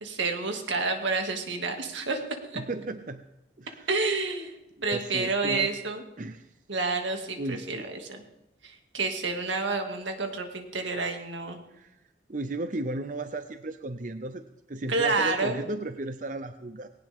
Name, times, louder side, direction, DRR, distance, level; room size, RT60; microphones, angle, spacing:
voice 1, 0.0-2.2 3.9-4.5 4.8-6.0 6.7-8.2 8.6-11.6 14.9-15.6, right 3 dB, 90° right, 4 dB, 2.4 m, -29 dB
voice 2, 2.6-3.3 3.6-3.9 4.9-5.7 6.2-6.5 7.4-8.0 11.7-12.0 12.3-14.4 14.7-16.9, right 2 dB, 45° right, 9 dB, 0.6 m, -35 dB
19.5 x 18.0 x 3.7 m, 0.89 s
head